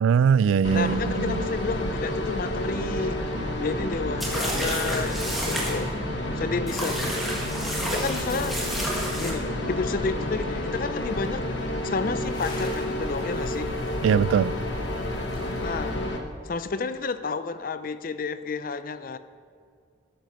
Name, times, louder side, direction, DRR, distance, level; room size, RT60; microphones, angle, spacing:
voice 1, 0.0-1.4 14.0-14.5, right 7 dB, 85° right, 18 dB, 0.3 m, -21 dB
sound 1, 0.6-16.2, left 1 dB, 65° left, 1.2 m, -30 dB
voice 2, 0.7-3.2 3.6-5.9 6.4-7.0 7.8-8.6 9.2-11.5 11.8-13.7 15.6-16.0 16.4-19.2, left 4 dB, 45° left, 12 dB, 0.4 m, -31 dB
sound 2, 4.2-5.8 6.7-9.3, equal, ahead, 1.7 m, -31 dB
sound 3, 11.0-16.1, left 1 dB, 20° left, 1.5 m, -46 dB
12.5 x 7.6 x 5.6 m, 2.2 s
head